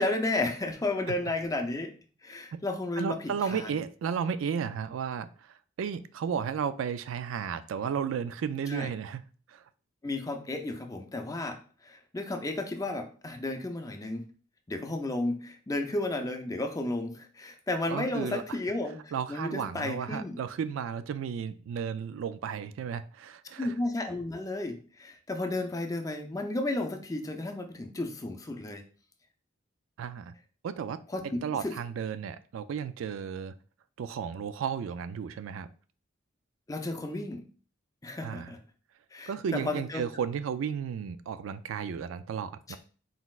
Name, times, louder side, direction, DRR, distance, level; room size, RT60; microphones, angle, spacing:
voice 1, 0.0-1.9 2.2-3.8 8.7-8.9 10.0-14.2 14.7-20.4 23.6-28.8 31.1-31.7 36.7-37.4 38.0-38.6 39.1-40.0 42.7-42.8, left 2 dB, 15° left, 5 dB, 0.5 m, -33 dB
voice 2, 3.0-9.2 9.5-9.6 17.9-18.6 19.1-23.7 30.0-30.3 30.6-31.0 31.4-33.5 34.0-35.7 38.2-38.5 39.3-42.8, right 7 dB, 80° right, 13 dB, 0.3 m, -33 dB
4.1 x 4.1 x 2.4 m, 0.41 s
head